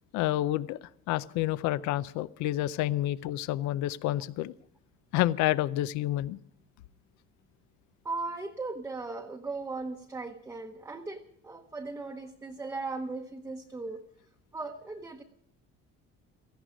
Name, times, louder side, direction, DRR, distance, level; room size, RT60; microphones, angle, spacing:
voice 1, 0.1-0.8 1.1-4.5 5.1-6.4, left 14 dB, 75° left, 17 dB, 0.6 m, -29 dB
voice 2, 8.0-14.0 14.5-15.2, right 3 dB, 10° right, 2 dB, 0.9 m, -37 dB
17.5 x 15.5 x 5.1 m, 0.69 s
cardioid pair, 180°, 29 cm